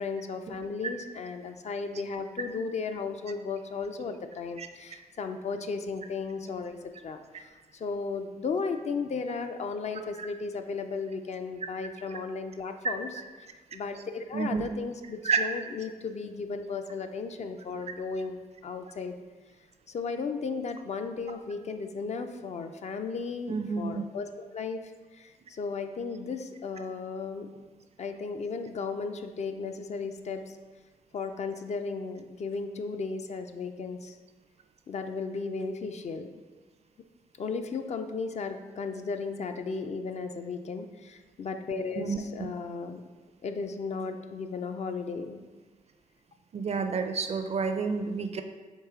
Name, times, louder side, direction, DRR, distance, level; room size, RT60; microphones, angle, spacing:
voice 1, 0.0-13.1 13.7-19.2 19.9-27.5 28.0-30.6 31.1-34.2 34.9-36.3 37.4-43.0 43.4-45.4, left 4 dB, 50° left, 6 dB, 0.4 m, -35 dB
voice 2, 14.3-14.7 15.2-15.4 23.5-24.0 42.0-42.2 46.5-48.4, right 5 dB, 45° right, 7 dB, 0.4 m, -29 dB
4.7 x 2.7 x 3.6 m, 1.3 s
supercardioid pair, 55°, 15 cm